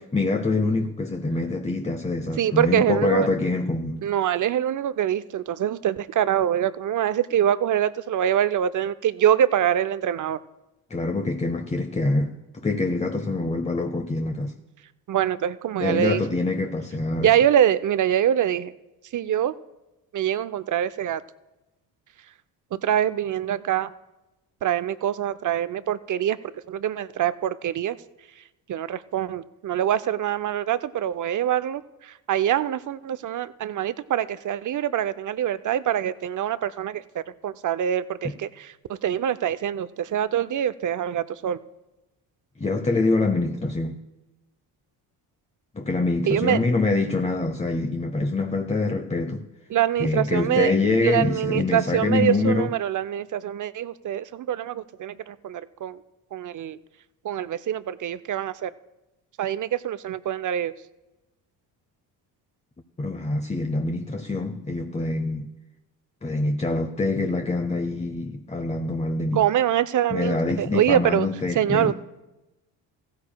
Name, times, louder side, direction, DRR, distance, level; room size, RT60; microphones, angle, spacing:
voice 1, 0.0-4.1 10.9-14.5 15.8-17.3 38.2-38.4 42.6-44.0 45.7-49.4 50.0-52.7 63.0-65.5 66.2-69.4 70.1-71.9, left 3 dB, 15° left, 0.8 m, -25 dB
voice 2, 2.4-3.3 4.0-10.4 15.1-16.2 17.2-18.7 19.1-19.5 20.1-21.2 22.7-23.9 24.6-26.4 26.7-28.0 28.7-38.7 39.0-41.6 46.3-46.6 49.7-50.7 51.0-56.0 56.3-56.8 57.2-58.7 59.4-60.7 69.3-71.3 71.6-71.9, right 10 dB, 40° right, 0.6 m, -24 dB
15.5 x 14.5 x 2.3 m
hypercardioid pair, 55°, 48 cm